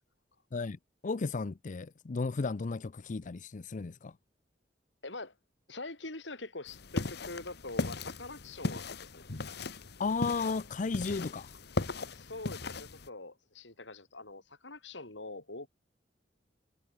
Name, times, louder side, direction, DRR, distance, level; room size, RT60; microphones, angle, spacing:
voice 1, 0.5-4.1 10.0-11.5, left 4 dB, 45° left, 0.5 m, -34 dB
voice 2, 5.0-5.4 5.7-9.2 12.1-15.7, left 2 dB, 75° left, 4.5 m, -44 dB
sound 1, 6.7-13.1, left 3 dB, 60° left, 1.2 m, -37 dB
head